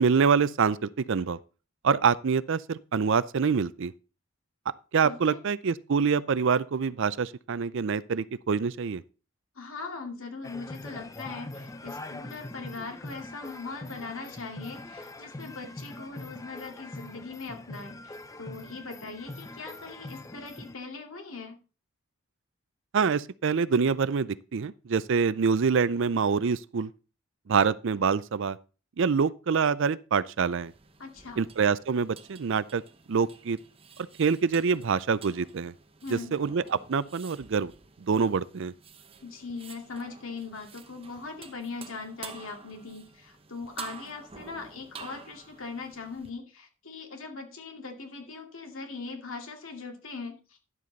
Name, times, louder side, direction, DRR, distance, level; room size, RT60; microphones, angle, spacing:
voice 1, 0.0-1.4 1.8-3.9 4.9-9.0 22.9-26.9 27.5-28.6 29.0-30.7 31.4-32.8 33.1-33.6 34.2-35.7 36.1-37.7 38.0-38.7, right 5 dB, 60° right, 0.5 m, -25 dB
voice 2, 5.0-5.4 9.6-21.6 31.0-31.5 36.0-36.4 39.2-50.6, left 4 dB, 70° left, 2.3 m, -40 dB
sound 1, 10.4-20.7, left 2 dB, 15° left, 0.5 m, -43 dB
sound 2, 30.6-46.3, right 5 dB, 25° right, 0.9 m, -50 dB
11.0 x 7.6 x 4.0 m
head